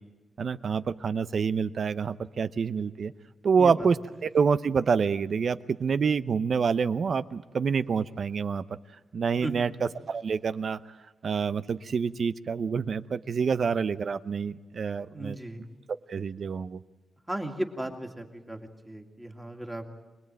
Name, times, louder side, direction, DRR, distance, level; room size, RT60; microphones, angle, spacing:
voice 1, 0.4-3.1 3.4-4.0 4.2-8.6 9.1-9.7 10.1-10.8 11.2-15.4 16.1-16.8, right 6 dB, 55° right, 14 dB, 0.7 m, -27 dB
voice 2, 3.5-3.9 9.4-9.7 15.1-15.6 17.3-19.8, right 1 dB, 10° right, 3 dB, 2.3 m, -36 dB
25.0 x 20.0 x 9.1 m, 1.1 s
wide cardioid pair, 130°, 0 cm